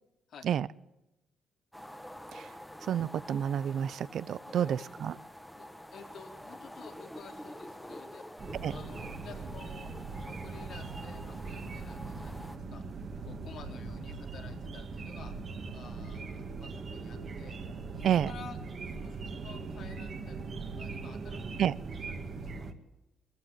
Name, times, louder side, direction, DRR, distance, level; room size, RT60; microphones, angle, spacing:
sound 1, 1.7-12.6, equal, 5° left, 1.4 m, -47 dB
voice 1, 2.8-5.1 8.6-8.8 18.0-18.3 21.6-21.7, right 9 dB, 65° right, 19 dB, 0.6 m, -29 dB
voice 2, 4.5-4.9 5.6-8.2 8.7-9.9 10.3-12.8 13.2-15.3 15.7-17.6 17.9-18.6 18.8-21.6 22.1-22.7, left 6 dB, 65° left, 3 dB, 3.6 m, -52 dB
sound 2, 8.4-22.7, right 4 dB, 45° right, 2.1 m, -40 dB
19.5 x 14.5 x 10.0 m, 0.96 s
cardioid pair, 90°, 0 cm